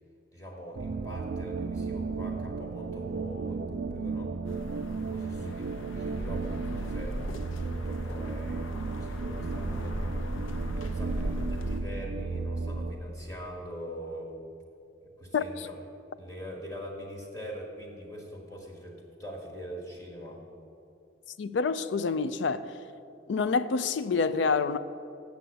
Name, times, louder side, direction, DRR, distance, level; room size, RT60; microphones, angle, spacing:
voice 1, 0.3-4.3 5.0-7.3 7.8-10.1 10.8-14.3 15.0-15.8 16.2-20.4, equal, 20° left, -2 dB, 1.5 m, -43 dB
sound 1, 0.7-12.9, right 4 dB, 55° right, 0.4 m, -34 dB
sound 2, 4.4-11.8, equal, 90° left, 0.8 m, -38 dB
voice 2, 15.3-15.7 21.4-22.8 23.3-24.8, left 4 dB, 65° left, 14 dB, 0.4 m, -27 dB
7.8 x 6.7 x 7.9 m, 2.6 s
head